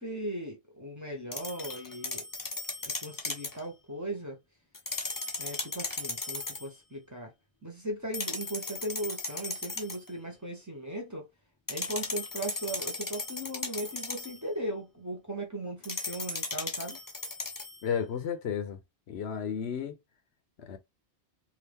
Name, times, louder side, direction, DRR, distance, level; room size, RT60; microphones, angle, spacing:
voice 1, 0.0-2.2 2.8-4.4 5.4-7.3 7.6-11.3 11.7-17.0, right 1 dB, 15° right, 0.9 m, -38 dB
sound 1, 1.3-3.6 4.7-6.7 8.1-10.1 11.7-14.4 15.8-17.8, left 3 dB, 25° left, 0.4 m, -36 dB
voice 2, 17.8-18.8 19.1-19.9 20.6-20.8, left 7 dB, 75° left, 1.0 m, -33 dB
2.9 x 2.5 x 3.5 m
omnidirectional pair, 1.1 m